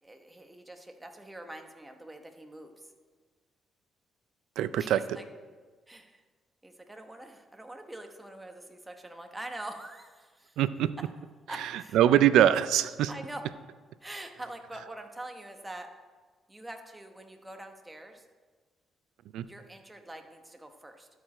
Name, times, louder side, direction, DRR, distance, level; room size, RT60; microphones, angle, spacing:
voice 1, 0.0-2.9 4.8-5.2 5.9-6.2 6.6-10.6 11.5-12.0 13.1-13.4 14.0-15.9 16.5-18.2 19.5-21.1, right 1 dB, 10° right, 5 dB, 1.0 m, -44 dB
voice 2, 4.6-5.0 10.6-10.9 11.9-13.1 19.3-19.5, right 11 dB, 85° right, 14 dB, 0.3 m, -22 dB
12.5 x 4.9 x 4.4 m, 1.4 s
cardioid pair, 90°, 0 cm